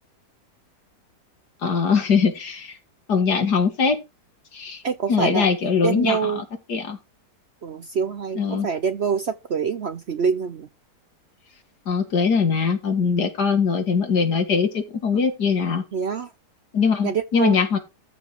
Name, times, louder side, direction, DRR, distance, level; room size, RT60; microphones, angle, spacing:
voice 1, 1.6-2.8 3.1-4.0 4.5-4.8 5.1-7.0 8.3-8.7 11.9-15.8 16.7-17.8, left 5 dB, 70° left, 2.5 m, -21 dB
voice 2, 4.8-5.5 5.8-6.4 7.6-10.7 15.9-16.3 17.0-17.6, right 6 dB, 55° right, 0.8 m, -25 dB
13.5 x 5.2 x 4.9 m
omnidirectional pair, 1.8 m